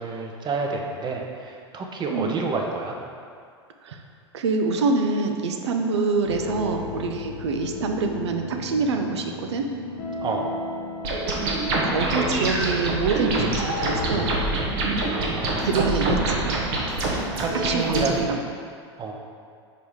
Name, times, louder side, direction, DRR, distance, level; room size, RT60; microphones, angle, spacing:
voice 1, 0.0-3.0 10.2-10.5 15.1-16.3 17.4-18.3 19.0-19.1, right 4 dB, 30° right, 1 dB, 1.0 m, -29 dB
voice 2, 4.3-9.7 11.8-14.3 15.6-16.6 17.6-18.4, right 4 dB, 75° right, 4 dB, 0.6 m, -25 dB
sound 1, 6.2-18.1, left 2 dB, 65° left, 1.0 m, -34 dB
sound 2, 11.0-18.1, right 2 dB, 60° right, 1.3 m, -26 dB
5.0 x 4.7 x 5.1 m, 2.2 s
hypercardioid pair, 85°, 14 cm